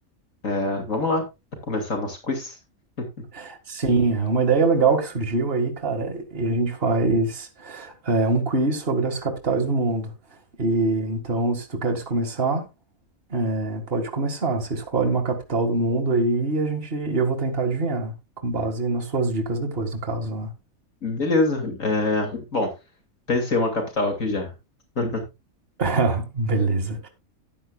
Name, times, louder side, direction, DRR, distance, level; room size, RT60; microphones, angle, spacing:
voice 1, 0.4-1.2 1.7-2.5 3.0-3.1 21.0-22.7 23.3-24.5 25.0-25.2, left 2 dB, 65° left, 3.1 m, -24 dB
voice 2, 3.3-10.1 10.6-12.6 13.3-18.1 18.4-20.5 25.8-27.1, right 3 dB, 40° right, 2.1 m, -24 dB
14.0 x 10.0 x 2.4 m
omnidirectional pair, 1.5 m